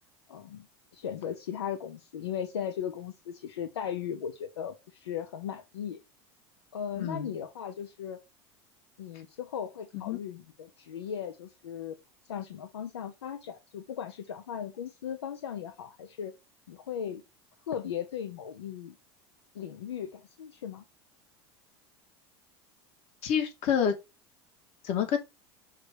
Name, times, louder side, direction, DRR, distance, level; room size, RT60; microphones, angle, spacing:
voice 1, 0.3-0.7 0.9-6.0 6.7-8.2 9.0-12.0 12.3-16.3 16.7-17.2 17.7-19.0 19.5-20.8, left 8 dB, 85° left, 0.8 m, -37 dB
voice 2, 7.0-7.3 9.9-10.2 23.2-23.9 24.8-25.2, left 8 dB, 55° left, 1.8 m, -28 dB
5.7 x 3.3 x 5.0 m
hypercardioid pair, 85°, 13 cm